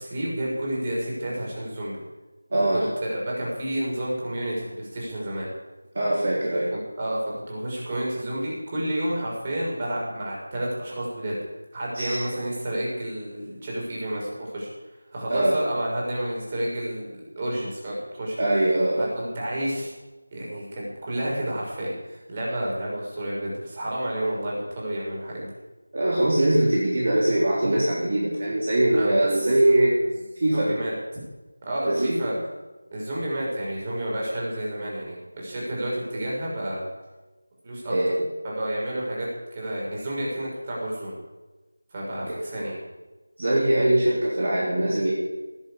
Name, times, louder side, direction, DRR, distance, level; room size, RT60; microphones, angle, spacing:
voice 1, 0.0-2.0 2.7-5.5 6.7-7.2 7.5-11.4 11.7-14.7 15.1-18.4 19.0-19.9 20.3-25.5 28.9-29.5 30.5-30.9 31.6-32.3 32.9-36.8 37.6-37.9 38.4-41.1 41.9-42.8, right 1 dB, 25° right, -4 dB, 5.7 m, -30 dB
voice 2, 2.5-2.9 5.9-6.7 11.9-12.3 15.3-15.6 18.4-19.1 25.9-29.9 30.4-30.7 31.8-32.2 37.9-38.2 42.3-42.4 43.4-45.1, right 1 dB, 40° right, -5 dB, 3.7 m, -22 dB
18.5 x 8.3 x 8.5 m, 1.2 s
figure-of-eight pair, 170°, 0 cm